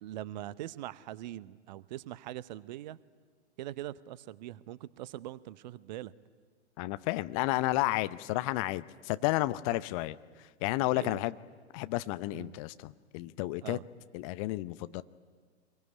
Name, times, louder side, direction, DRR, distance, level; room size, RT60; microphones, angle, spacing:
voice 1, 0.0-3.0 3.6-6.1 10.9-11.2 12.3-12.6 13.6-13.8, right 14 dB, 40° right, 19 dB, 0.9 m, -42 dB
voice 2, 6.8-10.1 10.6-11.3 11.7-13.8 14.1-15.0, left 18 dB, 30° left, 14 dB, 0.7 m, -31 dB
25.5 x 22.5 x 10.0 m, 1.5 s
figure-of-eight pair, 105°, 34 cm